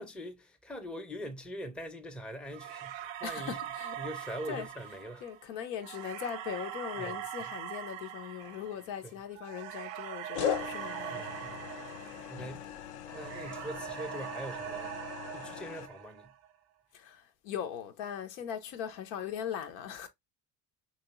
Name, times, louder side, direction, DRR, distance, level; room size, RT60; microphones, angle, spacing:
voice 1, 0.0-3.6 4.0-5.2 7.0-7.2 9.0-9.1 11.1-11.7 12.3-12.7 13.1-15.0 15.3-16.3, equal, ahead, 0.5 m, -42 dB
sound 1, 2.5-12.7 13.1-16.5, right 10 dB, 90° right, 0.7 m, -42 dB
voice 2, 3.2-4.7 5.2-11.6 16.9-20.1, left 8 dB, 90° left, 0.8 m, -40 dB
sound 2, 8.4-9.1 10.3-15.9, left 9 dB, 60° left, 0.6 m, -39 dB
3.1 x 2.8 x 2.9 m
supercardioid pair, 90°, 47 cm